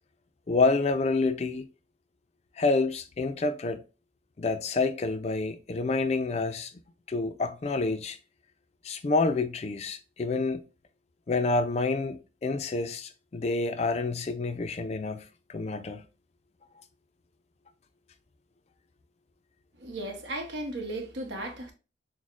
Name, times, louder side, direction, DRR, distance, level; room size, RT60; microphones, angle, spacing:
voice 1, 0.5-1.7 2.6-3.8 4.4-6.7 7.1-8.2 8.8-10.6 11.3-16.0, left 3 dB, 35° left, 0.4 m, -28 dB
voice 2, 19.8-21.7, right 1 dB, 85° right, 0.9 m, -35 dB
6.1 x 2.1 x 2.4 m
head